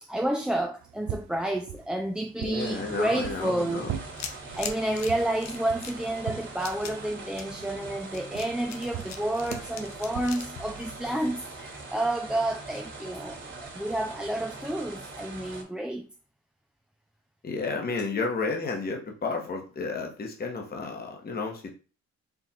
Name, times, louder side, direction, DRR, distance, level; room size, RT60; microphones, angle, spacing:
voice 1, 0.0-3.9 4.6-16.1, right 1 dB, 5° right, 0.4 m, -30 dB
sound 1, 0.8-10.4, right 10 dB, 70° right, 0.5 m, -42 dB
voice 2, 2.4-3.9 17.4-21.7, left 4 dB, 30° left, 1.0 m, -32 dB
sound 2, 2.6-15.6, right 3 dB, 40° right, 1.8 m, -42 dB
sound 3, 4.1-11.6, left 6 dB, 65° left, 0.8 m, -42 dB
4.6 x 2.4 x 4.2 m
cardioid pair, 90°, 30 cm